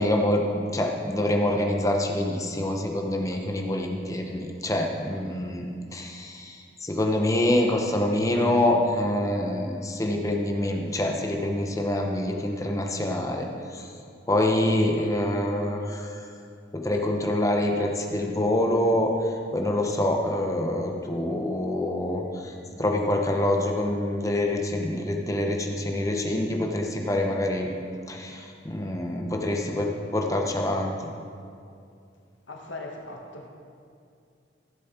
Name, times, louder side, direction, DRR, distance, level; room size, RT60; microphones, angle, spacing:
voice 1, 0.0-13.9 14.3-16.2 16.7-27.7 28.1-31.0, left 1 dB, 15° left, 1 dB, 0.9 m, -26 dB
voice 2, 32.5-33.5, left 2 dB, 85° left, 1 dB, 1.5 m, -39 dB
15.5 x 7.2 x 4.4 m, 2.4 s
head